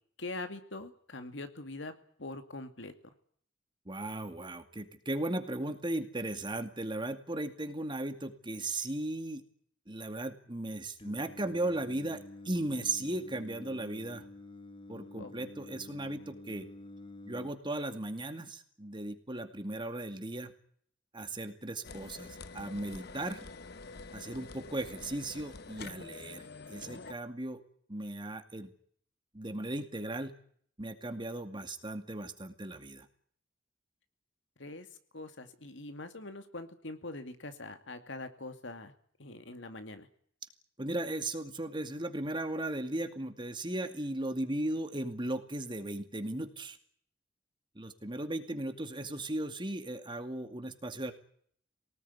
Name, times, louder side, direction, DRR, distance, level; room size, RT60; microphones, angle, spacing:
voice 1, 0.2-1.9 2.2-2.9 15.2-15.3 34.6-34.9 35.1-38.9 39.2-40.1, left 2 dB, 70° left, 8 dB, 2.4 m, -43 dB
voice 2, 3.9-9.4 9.9-14.2 14.9-16.7 17.3-20.5 21.1-23.4 24.1-27.6 27.9-28.7 29.3-30.3 30.8-33.1 40.8-46.8 47.8-51.1, right 1 dB, 25° right, 8 dB, 2.3 m, -37 dB
Singing, 11.0-17.5, left 2 dB, 30° left, 1.7 m, -49 dB
sound 1, 21.8-27.1, left 3 dB, 55° left, 1.0 m, -47 dB
24.0 x 19.0 x 9.7 m, 0.62 s
head